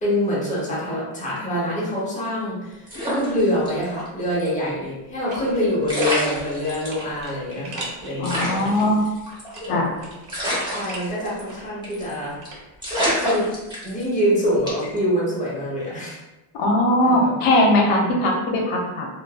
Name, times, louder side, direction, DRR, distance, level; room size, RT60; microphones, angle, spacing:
voice 1, 0.0-8.9 9.6-9.8 10.7-12.4 13.1-13.5 13.8-16.2 17.0-17.3 17.9-18.4, equal, 15° left, -6 dB, 1.0 m, -25 dB
sound 1, 2.9-4.1 4.4-4.5 5.5-5.6 5.9-7.0 7.5-7.6 7.8-7.9 8.2-9.8 10.3-11.6 11.8-12.1 12.5-12.6 12.8-14.2 14.7-15.0, equal, 10° right, 0.9 m, -26 dB
sound 2, 5.3-5.7 6.0-8.8 9.3-11.1 11.5-13.0 13.3-13.4, right 2 dB, 50° right, 1.0 m, -39 dB
voice 2, 8.2-9.0 9.7-9.9 16.5-19.1, left 1 dB, 80° left, 1 dB, 0.6 m, -20 dB
2.4 x 2.1 x 2.3 m, 1.0 s
cardioid pair, 120°, 49 cm